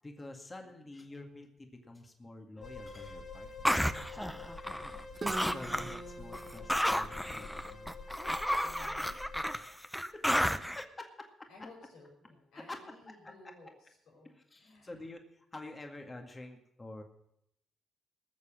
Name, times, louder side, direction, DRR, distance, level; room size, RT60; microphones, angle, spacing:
voice 1, 0.0-3.7 4.6-4.9 5.5-7.9 9.5-10.0 10.5-11.3 12.6-12.8 14.5-17.0, left 2 dB, 25° left, 4 dB, 1.9 m, -48 dB
sound 1, 2.6-9.5, left 4 dB, 55° left, 1.9 m, -47 dB
sound 2, 3.6-5.0 5.3-6.0 6.3-10.8, equal, 5° left, 0.8 m, -32 dB
Guitar, 5.1-8.9, right 3 dB, 35° right, 1.1 m, -44 dB
voice 2, 8.6-9.2 11.5-15.1, left 2 dB, 75° left, -4 dB, 5.8 m, -56 dB
18.5 x 6.9 x 7.5 m, 0.77 s
supercardioid pair, 70°, 0 cm